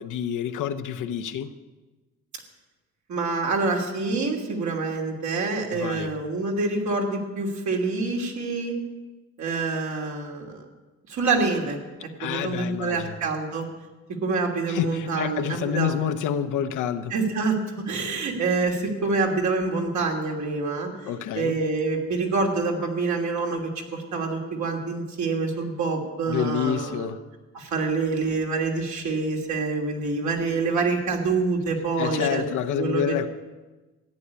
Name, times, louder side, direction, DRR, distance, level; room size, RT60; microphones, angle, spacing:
voice 1, 0.0-1.5 5.7-6.1 12.2-13.2 14.7-17.1 21.1-21.6 26.3-27.2 32.0-33.3, left 9 dB, 85° left, 8 dB, 1.0 m, -28 dB
voice 2, 3.1-8.7 9.4-10.6 11.1-11.8 12.2-13.6 14.2-15.9 17.1-20.9 21.3-27.1 27.5-32.4 32.7-33.3, right 3 dB, 70° right, 1 dB, 3.0 m, -26 dB
14.5 x 9.6 x 8.4 m, 1.2 s
cardioid pair, 90°, 30 cm